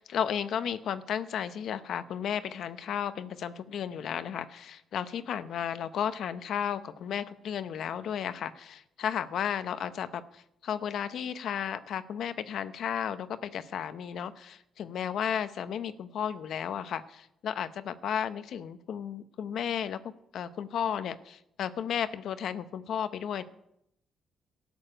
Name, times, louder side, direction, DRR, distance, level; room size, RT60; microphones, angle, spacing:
voice 1, 0.0-20.0 20.3-23.4, left 8 dB, 70° left, 12 dB, 0.8 m, -33 dB
13.0 x 7.2 x 8.8 m, 0.78 s
cardioid pair, 90°, 0 cm